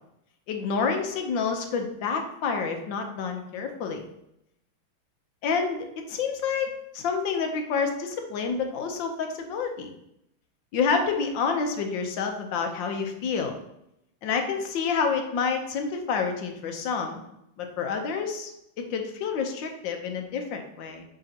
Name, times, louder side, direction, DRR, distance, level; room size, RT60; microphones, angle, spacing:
voice 1, 0.5-4.0 5.4-9.9 10.7-13.6 14.2-17.2 17.6-18.5 18.8-21.0, left 5 dB, 65° left, 4 dB, 1.5 m, -28 dB
7.5 x 5.0 x 2.9 m, 0.80 s
omnidirectional pair, 2.3 m